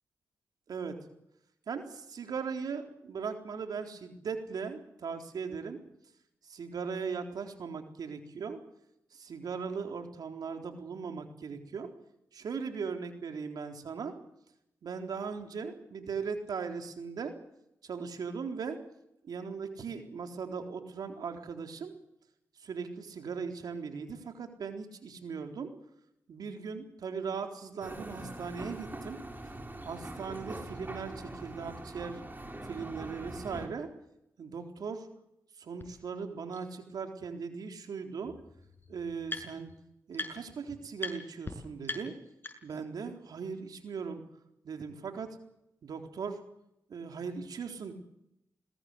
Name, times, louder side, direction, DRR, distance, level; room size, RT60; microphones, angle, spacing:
voice 1, 1.7-5.8 6.5-8.6 9.1-11.9 12.3-14.1 14.8-17.3 17.8-18.8 19.2-21.9 22.6-25.7 26.3-29.2 29.8-32.2 32.7-33.9 34.4-35.1 35.6-38.3 38.9-39.7 40.1-42.1 42.6-44.2 44.6-45.4 45.8-46.4 46.9-47.9, right 5 dB, 75° right, 5 dB, 3.9 m, -38 dB
sound 1, 27.8-33.7, right 1 dB, 30° right, 5.3 m, -43 dB
sound 2, 35.8-35.9 36.5-36.6 37.9-38.0 38.2-39.8 40.1-40.6 41.0-41.1 41.4-41.5 41.8-42.9, left 2 dB, 30° left, 6.8 m, -40 dB
21.5 x 20.5 x 8.1 m, 0.80 s
supercardioid pair, 45°, 7 cm